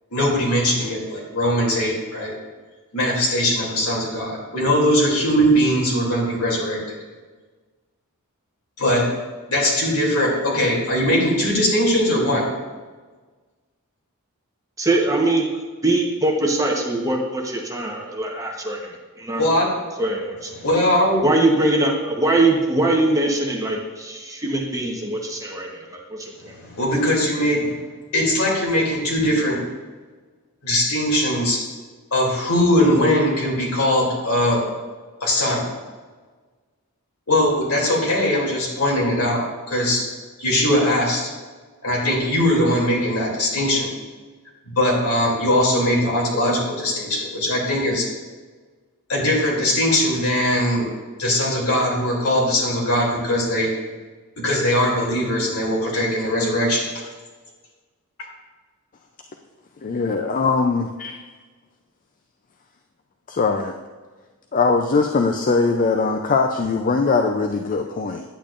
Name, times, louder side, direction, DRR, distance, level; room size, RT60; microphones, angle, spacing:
voice 1, 0.1-2.3 2.9-6.8 8.8-9.0 9.5-12.5 19.4-19.7 20.6-21.4 26.5-27.8 28.1-29.6 30.6-31.6 32.1-34.6 35.2-35.6 37.3-40.0 40.4-41.3 41.8-43.9 44.6-48.0 49.1-50.9 51.2-53.7 54.4-56.9, left 1 dB, 75° left, -3 dB, 2.8 m, -20 dB
voice 2, 14.8-15.4 15.8-19.4 20.0-20.5 21.2-26.5, right 2 dB, 15° right, 0 dB, 1.0 m, -22 dB
voice 3, 59.8-61.2 63.3-63.7 64.5-68.2, left 4 dB, 35° left, 4 dB, 0.4 m, -21 dB
10.0 x 8.7 x 2.5 m, 1.4 s
head